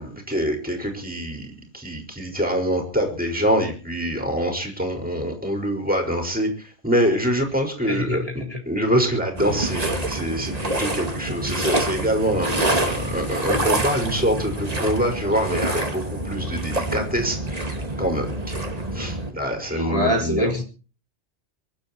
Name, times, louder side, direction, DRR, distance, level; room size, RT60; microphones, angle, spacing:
voice 1, 0.0-8.2 8.6-18.3 18.9-20.5, equal, 5° right, 3 dB, 5.1 m, -25 dB
voice 2, 7.8-8.6 19.6-20.6, left 1 dB, 30° left, 2 dB, 4.0 m, -25 dB
sound 1, 9.4-19.3, right 1 dB, 35° right, 2.6 m, -26 dB
24.0 x 11.5 x 4.4 m, 0.37 s
omnidirectional pair, 1.1 m